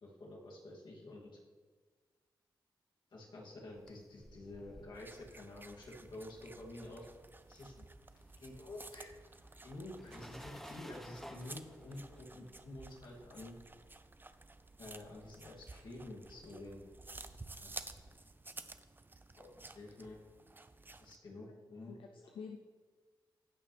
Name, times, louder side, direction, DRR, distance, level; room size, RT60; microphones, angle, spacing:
voice 1, 0.0-1.4 3.1-7.1 7.5-7.7 8.4-9.1 9.6-13.5 14.8-16.8 17.6-17.7 19.4-20.2 21.0-21.9, left 2 dB, 65° left, -4 dB, 2.7 m, -49 dB
sound 1, 3.5-7.2 7.4-18.2, equal, 5° left, 1.0 m, -57 dB
Trichosurus vulpecula Eating, 4.9-21.2, right 2 dB, 25° right, 0.6 m, -53 dB
voice 2, 21.9-22.6, left 5 dB, 85° left, 4 dB, 0.6 m, -49 dB
16.0 x 5.8 x 3.4 m, 1.5 s
cardioid pair, 55°, 8 cm